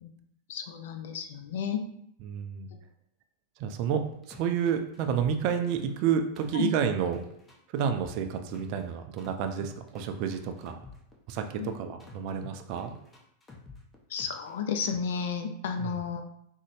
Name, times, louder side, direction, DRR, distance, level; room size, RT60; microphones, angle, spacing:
voice 1, 0.5-1.8 6.5-6.7 11.6-11.8 14.1-16.2, left 6 dB, 55° left, 6 dB, 0.4 m, -32 dB
voice 2, 2.2-2.7 3.6-7.2 7.7-10.8 11.3-12.9 15.8-16.0, right 7 dB, 45° right, 7 dB, 0.3 m, -30 dB
sound 1, 4.0-6.1 6.4-8.9 9.2-11.7 12.0-14.5 14.8-15.2, left 3 dB, 15° left, 0.6 m, -49 dB
3.8 x 2.0 x 3.0 m, 0.73 s
figure-of-eight pair, 90°, 0 cm